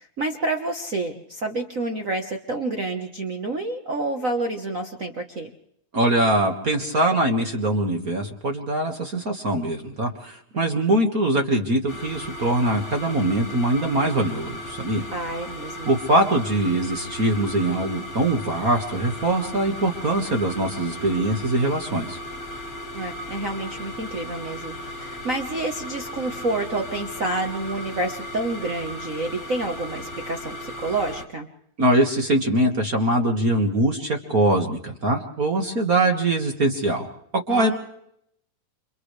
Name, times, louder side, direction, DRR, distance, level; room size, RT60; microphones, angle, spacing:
voice 1, 0.0-5.5 15.1-15.9 22.9-31.5 37.5-37.8, right 2 dB, 75° right, 4 dB, 0.7 m, -29 dB
voice 2, 5.9-15.1 15.8-22.2 31.8-37.1 37.5-37.8, right 1 dB, 35° right, 4 dB, 1.5 m, -22 dB
sound 1, 11.9-31.2, left 1 dB, 30° left, 2.4 m, -36 dB
29.5 x 27.0 x 3.3 m, 0.73 s
omnidirectional pair, 3.6 m